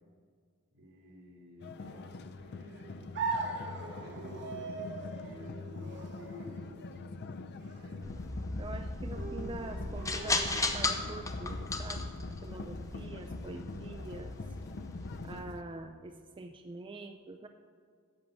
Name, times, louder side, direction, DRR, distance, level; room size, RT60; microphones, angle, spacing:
voice 1, 0.7-6.7 7.7-8.1, right 1 dB, 75° right, -3 dB, 3.5 m, -53 dB
sound 1, 1.6-15.6, left 3 dB, 50° left, 0.5 m, -44 dB
sound 2, 3.1-11.1, right 3 dB, 55° right, 1.6 m, -41 dB
sound 3, 8.0-15.4, left 2 dB, 15° left, 0.8 m, -36 dB
voice 2, 8.6-12.1 12.4-14.4 15.2-17.5, right 2 dB, 25° right, 6 dB, 0.4 m, -45 dB
11.0 x 7.3 x 7.4 m, 2.1 s
head